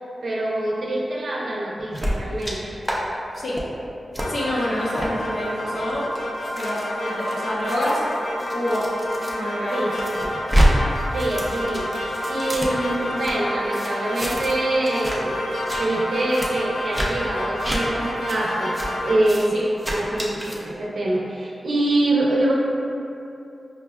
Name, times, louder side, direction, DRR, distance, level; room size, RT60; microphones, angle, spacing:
voice 1, 0.2-2.7 4.6-4.7 9.7-10.4 11.1-11.9 12.3-15.4 15.8-18.7 19.0-19.5 19.9-22.5, right 1 dB, 60° right, -4 dB, 0.6 m, -24 dB
sound 1, 1.9-2.5 2.8-3.0 3.3-3.6 4.1-4.3 4.9-5.1 5.7-9.3 9.7-10.7 11.0-13.3 13.7-14.6 14.8-15.2 15.5-15.8 16.3-16.5 16.9-17.1 17.6-17.8 18.3-18.4 18.7-18.9 19.2-19.5 19.8-20.6, equal, 5° right, 0.4 m, -26 dB
sound 2, 4.2-19.2, equal, 85° left, 0.5 m, -29 dB
voice 2, 4.3-6.1 6.5-8.0 8.5-8.9 9.3-9.9 19.5-19.6, left 1 dB, 70° left, -7 dB, 0.8 m, -27 dB
5.4 x 2.3 x 2.2 m, 2.7 s
wide cardioid pair, 155°, 0 cm